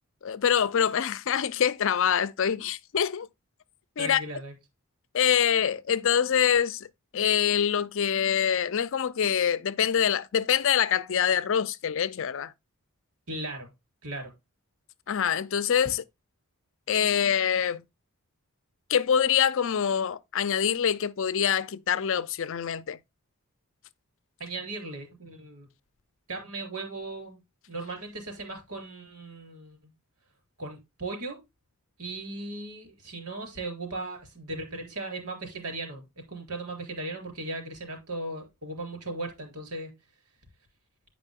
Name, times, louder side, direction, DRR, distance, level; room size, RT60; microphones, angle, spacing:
voice 1, 0.2-3.3 4.0-4.2 5.1-6.9 7.1-12.5 15.1-16.0 16.9-17.8 18.9-23.0, left 8 dB, 60° left, 0.5 m, -25 dB
voice 2, 4.0-4.5 13.3-13.7 14.0-14.3 24.4-25.7 26.3-27.4 27.7-29.8 30.6-31.4 32.0-39.9, right 2 dB, 85° right, 3.9 m, -37 dB
9.8 x 5.0 x 3.6 m
head